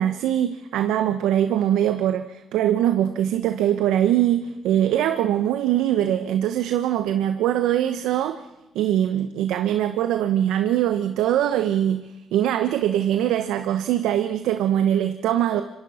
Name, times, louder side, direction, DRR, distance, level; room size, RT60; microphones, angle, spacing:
voice 1, 0.0-8.4 8.7-15.6, right 11 dB, 90° right, 1.0 m, -22 dB
26.5 x 24.0 x 5.7 m
cardioid pair, 75°, 0 cm